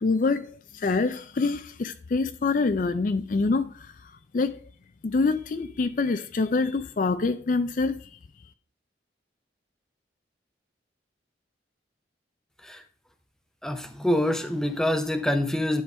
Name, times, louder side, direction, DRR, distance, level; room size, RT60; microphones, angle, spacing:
voice 1, 0.0-4.6 5.0-8.2, left 3 dB, 45° left, 0.4 m, -26 dB
voice 2, 13.6-15.8, left 1 dB, 5° left, 0.7 m, -26 dB
10.5 x 3.9 x 5.2 m
head